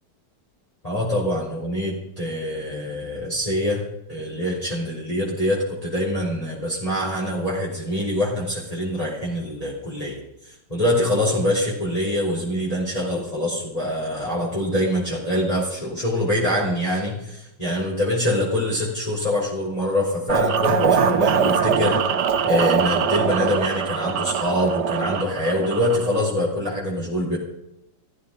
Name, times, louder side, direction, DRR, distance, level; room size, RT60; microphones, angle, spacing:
voice 1, 0.8-3.8 4.1-22.0 22.4-27.4, left 1 dB, 15° left, -5 dB, 4.1 m, -24 dB
sound 1, 20.3-26.2, right 7 dB, 60° right, 1.6 m, -22 dB
15.5 x 14.5 x 5.2 m, 0.85 s
omnidirectional pair, 2.1 m